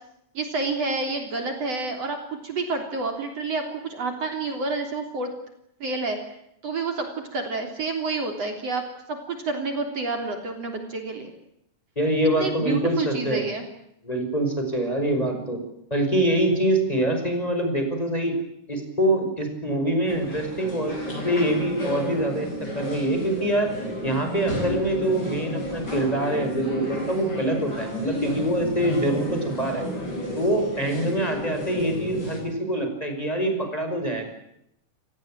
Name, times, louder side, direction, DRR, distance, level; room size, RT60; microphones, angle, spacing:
voice 1, 0.3-2.2 2.4-5.3 5.8-6.2 6.6-8.8 9.1-11.3 12.4-13.6 31.0-31.3, right 3 dB, 50° right, 4 dB, 4.4 m, -29 dB
voice 2, 12.0-13.5 14.0-15.6 15.9-18.4 18.7-23.7 24.0-29.8 30.4-34.2, right 1 dB, 10° left, 5 dB, 5.5 m, -25 dB
sound 1, 20.1-32.4, left 1 dB, 30° left, 8.5 m, -32 dB
29.0 x 18.5 x 9.0 m, 0.78 s
omnidirectional pair, 3.6 m